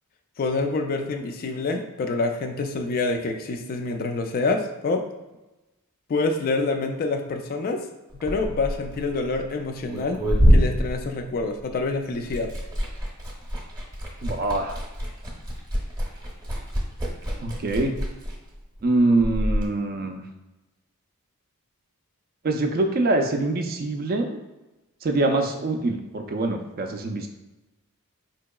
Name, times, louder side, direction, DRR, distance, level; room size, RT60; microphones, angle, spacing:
voice 1, 0.4-5.0 6.1-7.9 8.1-10.2 10.5-12.5, left 3 dB, 40° left, 5 dB, 0.3 m, -26 dB
Liquid, 8.1-11.8 12.1-19.7, equal, 15° right, 0.7 m, -26 dB
voice 2, 14.2-14.8 17.4-17.9 18.8-20.2 22.4-24.3 25.0-27.3, right 2 dB, 40° right, 5 dB, 0.4 m, -24 dB
4.4 x 2.8 x 2.2 m, 1.1 s
head